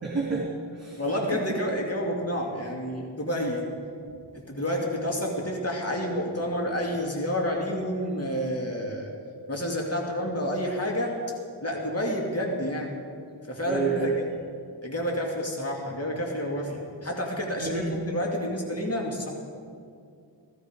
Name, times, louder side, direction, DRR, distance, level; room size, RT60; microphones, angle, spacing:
voice 1, 0.0-1.0 13.6-14.2 17.6-17.8, right 4 dB, 35° right, -5 dB, 2.8 m, -29 dB
voice 2, 1.0-3.7 4.3-9.1 9.5-11.2 11.6-12.9 13.5-14.1 14.8-19.3, equal, 30° left, -1 dB, 2.3 m, -29 dB
15.5 x 15.0 x 5.1 m, 2.3 s
wide cardioid pair, 55°, 45 cm